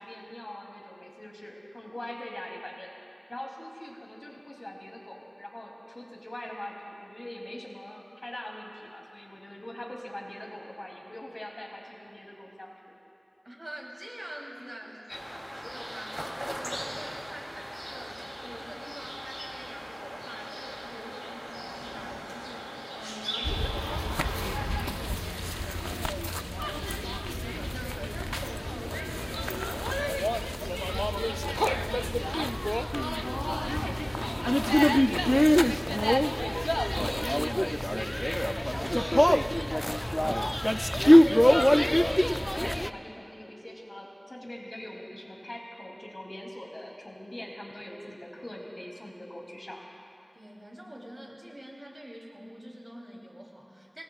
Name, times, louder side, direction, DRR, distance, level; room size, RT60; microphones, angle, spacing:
voice 1, 0.0-12.9 14.8-15.2 15.6-15.7 33.2-49.8, left 1 dB, 55° left, -2 dB, 2.9 m, -42 dB
voice 2, 13.4-15.2 15.7-25.3 25.6-32.5 50.3-54.0, equal, 40° right, -2 dB, 3.1 m, -45 dB
sound 1, 15.1-24.9, equal, 5° right, 2.9 m, -39 dB
sound 2, 23.4-42.9, equal, 15° left, 0.4 m, -26 dB
25.5 x 19.0 x 2.4 m, 2.6 s
wide cardioid pair, 40°, 0 cm